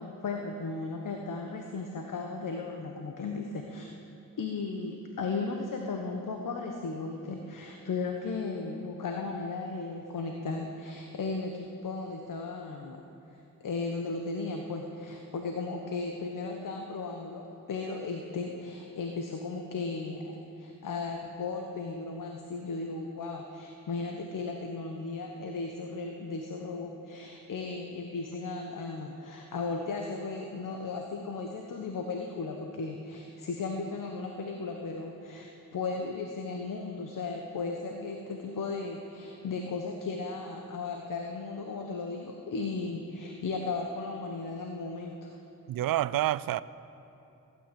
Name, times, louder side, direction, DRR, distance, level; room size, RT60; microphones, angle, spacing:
voice 1, 0.0-3.9 4.4-13.1 13.6-45.4, left 3 dB, 60° left, 1.3 m, -36 dB
voice 2, 45.7-46.6, right 13 dB, 70° right, 0.5 m, -28 dB
16.0 x 9.5 x 8.7 m
cardioid pair, 75°, 36 cm